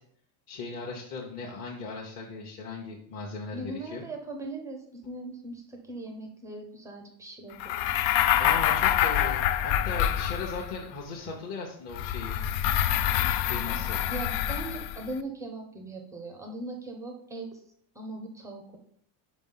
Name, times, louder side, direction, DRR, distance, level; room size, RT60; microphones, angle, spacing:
voice 1, 0.5-4.0 8.4-12.4 13.4-14.0, left 4 dB, 30° left, -3 dB, 0.9 m, -38 dB
voice 2, 3.5-7.8 14.1-17.6 17.9-18.8, right 2 dB, 5° right, 3 dB, 0.4 m, -39 dB
sound 1, 7.6-10.8 11.9-15.1, left 11 dB, 85° left, 0.7 m, -26 dB
5.2 x 5.1 x 5.5 m, 0.67 s
cardioid pair, 165°, 49 cm